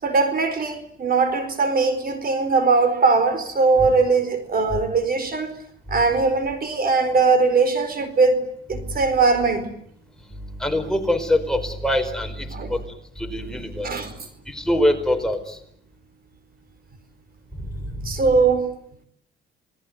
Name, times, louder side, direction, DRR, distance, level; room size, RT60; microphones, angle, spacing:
voice 1, 0.0-5.5 5.9-9.7 12.5-12.7 13.8-14.1 18.0-18.7, right 4 dB, 50° right, 11 dB, 4.5 m, -20 dB
voice 2, 10.6-12.8 13.2-13.9 14.5-15.6, left 1 dB, 5° left, 4 dB, 5.0 m, -23 dB
28.0 x 20.0 x 9.6 m, 0.69 s
cardioid pair, 90°, 20 cm